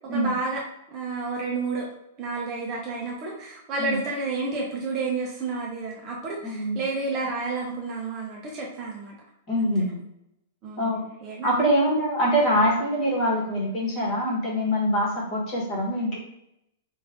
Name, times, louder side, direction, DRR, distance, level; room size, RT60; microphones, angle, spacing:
voice 1, 0.1-0.6 0.9-1.9 2.2-9.1 9.6-9.7 10.6-11.6, right 3 dB, 20° right, -2 dB, 0.6 m, -30 dB
voice 2, 6.4-6.8 9.5-10.0 10.8-11.0 11.4-16.2, equal, 25° left, -3 dB, 1.2 m, -24 dB
5.0 x 2.5 x 3.5 m, 0.81 s
supercardioid pair, 175°, 0 cm